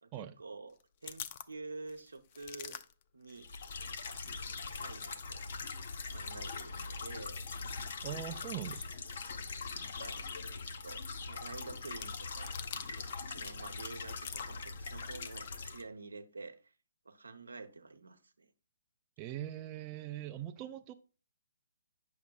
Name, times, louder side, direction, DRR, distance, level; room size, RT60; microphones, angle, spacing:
voice 1, 0.0-0.8 1.0-2.8 3.1-3.5 4.6-5.4 6.0-7.4 9.9-10.2 10.7-12.5 12.9-16.7 17.0-18.5, right 3 dB, 90° right, 0.8 m, -49 dB
sound 1, 0.7-4.3 4.6-13.2 13.5-15.6, left 10 dB, 40° left, 0.4 m, -51 dB
sound 2, 3.4-15.8, left 4 dB, 60° left, 0.7 m, -42 dB
voice 2, 8.0-8.9 19.2-20.9, right 12 dB, 25° right, 0.4 m, -41 dB
8.4 x 6.4 x 2.3 m
hypercardioid pair, 140°, 0 cm